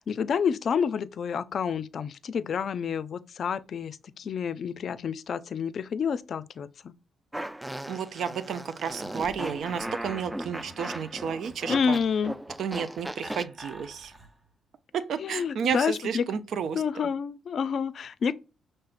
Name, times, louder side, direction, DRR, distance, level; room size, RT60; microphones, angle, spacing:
voice 1, 0.0-6.9 11.7-12.4 15.2-16.2 16.7-18.3, left 6 dB, 60° left, 0.4 m, -29 dB
Fart, 7.3-13.4, right 1 dB, 10° right, 0.3 m, -37 dB
voice 2, 7.9-12.0 12.6-14.1 14.9-16.8, right 7 dB, 70° right, 0.5 m, -32 dB
Laughter, 9.1-14.5, right 1 dB, 30° right, 1.0 m, -47 dB
5.6 x 3.3 x 2.5 m
cardioid pair, 75°, 0 cm